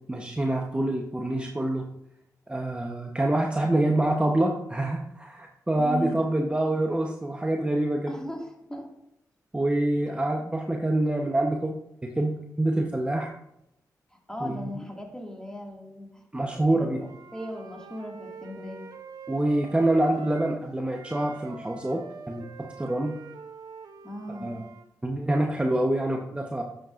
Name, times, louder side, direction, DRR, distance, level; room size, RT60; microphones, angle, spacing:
voice 1, 0.1-1.8 2.5-8.1 9.5-13.3 14.4-14.6 16.3-17.0 19.3-23.2 24.4-24.6 25.0-26.6, right 1 dB, 15° right, 1 dB, 0.9 m, -26 dB
voice 2, 5.8-6.5 8.1-8.9 14.1-16.2 16.5-18.9 24.0-24.6, equal, 10° left, 0 dB, 2.0 m, -38 dB
Wind instrument woodwind instrument, 17.0-20.6 20.9-24.9, right 5 dB, 75° right, 0.7 m, -45 dB
10.5 x 7.7 x 2.5 m, 0.79 s
cardioid pair, 60°, 7 cm